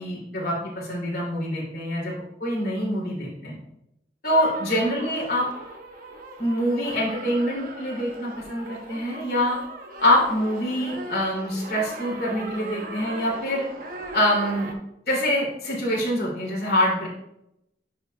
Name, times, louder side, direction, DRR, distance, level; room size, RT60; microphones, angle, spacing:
voice 1, 0.0-3.6 4.2-5.5 6.4-9.6 10.0-13.7 14.1-14.7 15.1-17.1, equal, 60° left, -4 dB, 2.7 m, -25 dB
sound 1, 4.3-14.7, right 1 dB, 50° right, 1.0 m, -39 dB
10.5 x 4.8 x 2.3 m, 0.80 s
head